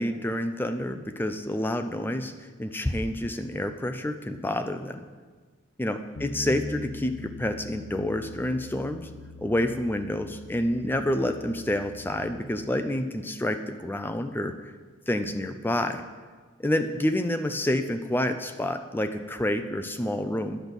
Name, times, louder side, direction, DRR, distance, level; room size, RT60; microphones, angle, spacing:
voice 1, 0.0-5.0 5.8-9.1 9.4-14.7 15.1-16.0 16.6-20.6, left 1 dB, 10° left, 7 dB, 0.4 m, -28 dB
Bass guitar, 6.2-12.4, left 2 dB, 50° left, 0.7 m, -42 dB
10.0 x 5.2 x 6.2 m, 1.4 s
head